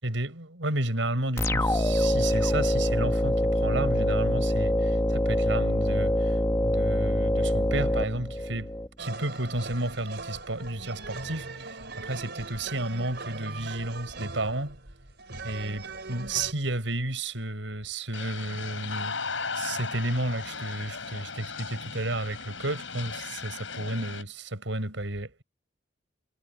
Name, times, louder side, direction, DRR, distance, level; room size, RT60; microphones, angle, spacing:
voice 1, 0.0-14.8 15.4-19.1 19.5-25.4, right 2 dB, 80° right, 5.4 m, -32 dB
sound 1, 1.4-8.9, left 1 dB, 15° left, 1.3 m, -25 dB
sound 2, 9.0-16.5, right 3 dB, 60° right, 4.8 m, -40 dB
sound 3, 18.1-24.2, left 5 dB, 80° left, 7.0 m, -36 dB
head